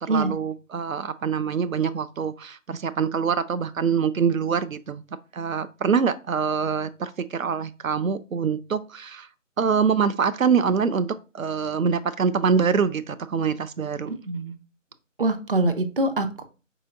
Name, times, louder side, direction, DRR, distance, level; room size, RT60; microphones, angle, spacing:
voice 1, 0.0-5.0 5.3-9.3 9.6-14.1, right 6 dB, 85° right, 0.5 m, -24 dB
voice 2, 14.1-14.6 15.2-16.4, right 2 dB, 45° right, 0.5 m, -24 dB
5.4 x 3.9 x 2.4 m
figure-of-eight pair, 150°, 39 cm